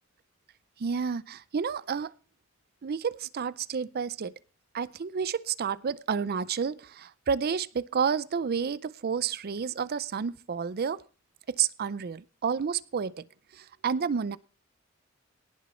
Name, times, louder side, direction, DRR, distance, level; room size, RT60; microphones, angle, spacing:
voice 1, 0.8-2.1 2.8-4.3 4.7-11.0 11.5-13.1 13.5-14.4, right 6 dB, 50° right, 19 dB, 0.5 m, -30 dB
18.0 x 7.1 x 4.3 m, 0.36 s
head